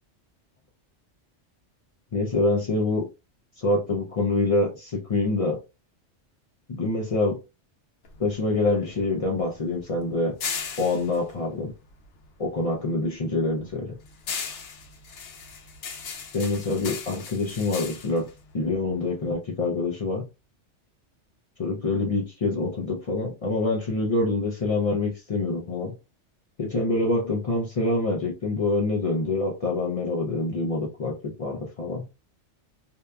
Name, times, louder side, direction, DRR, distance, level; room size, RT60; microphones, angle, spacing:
voice 1, 2.1-3.1 3.6-5.6 6.7-7.4 8.2-10.4 10.8-11.7 12.4-14.0 16.3-18.3 18.5-20.3 21.6-26.0 26.6-32.1, left 2 dB, 50° left, 0.4 m, -26 dB
sound 1, 8.0-12.6 12.9-19.3, left 5 dB, 75° left, 0.9 m, -38 dB
2.7 x 2.2 x 2.3 m
omnidirectional pair, 1.2 m